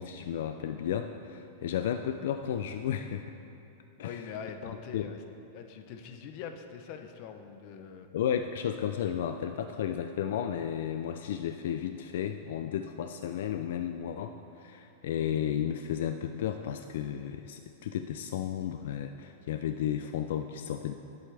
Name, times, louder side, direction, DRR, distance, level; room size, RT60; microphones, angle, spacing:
voice 1, 0.0-3.3 4.0-4.2 4.9-5.1 8.1-20.9, left 9 dB, 65° left, 7 dB, 0.4 m, -33 dB
voice 2, 4.0-5.2 5.5-8.1, left 6 dB, 40° left, 6 dB, 0.7 m, -43 dB
18.0 x 8.2 x 3.4 m, 2.8 s
supercardioid pair, 170°, 0 cm